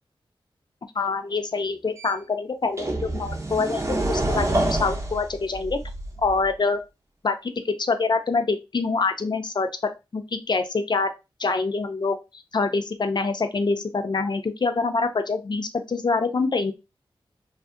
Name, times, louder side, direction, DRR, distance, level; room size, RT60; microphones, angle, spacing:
voice 1, 1.0-5.8 6.2-6.8 7.2-7.4 7.6-11.1 11.4-16.7, left 4 dB, 50° left, 7 dB, 0.5 m, -25 dB
sound 1, 2.0-2.1 2.8-6.5, right 1 dB, 30° right, 0.7 m, -27 dB
2.5 x 2.4 x 2.4 m, 0.26 s
cardioid pair, 45°, 10 cm